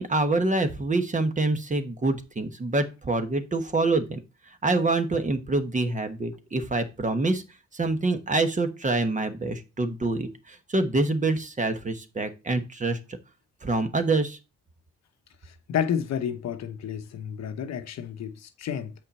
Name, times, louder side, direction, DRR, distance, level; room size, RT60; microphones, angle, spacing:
voice 1, 0.0-4.2 4.6-7.4 7.7-13.0 13.6-14.4, right 2 dB, 25° right, 1.1 m, -26 dB
voice 2, 15.4-18.9, left 8 dB, 60° left, 0.9 m, -31 dB
7.1 x 5.4 x 4.2 m
cardioid pair, 90°, 30 cm